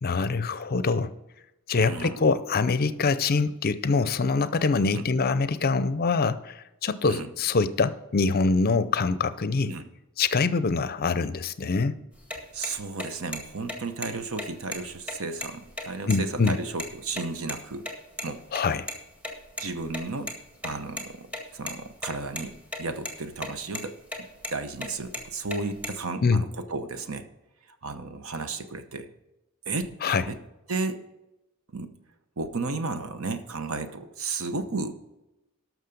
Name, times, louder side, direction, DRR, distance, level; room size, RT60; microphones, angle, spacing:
voice 1, 0.0-1.1 1.7-9.7 10.2-12.0 16.1-16.5 18.5-18.9 26.2-26.4 30.0-30.2, left 4 dB, 45° left, 14 dB, 0.5 m, -24 dB
voice 2, 1.7-2.2 4.9-5.1 7.0-7.3 9.6-9.9 12.5-17.9 18.2-18.6 19.6-20.3 20.6-27.3 27.8-29.1 29.7-30.4 30.7-31.0 31.7-31.9 32.4-35.0, right 3 dB, 65° right, 9 dB, 0.9 m, -34 dB
sound 1, 12.2-17.2 17.5-17.6 17.9-18.0 18.2-18.3 18.5-18.6 18.9-19.0 19.2-20.3 20.6-21.1 21.3-22.1 22.4-22.8 23.0-23.5 23.7-23.8 24.1-24.5 24.8-26.0, left 1 dB, 5° right, 1.9 m, -34 dB
12.5 x 6.3 x 5.2 m, 0.93 s
head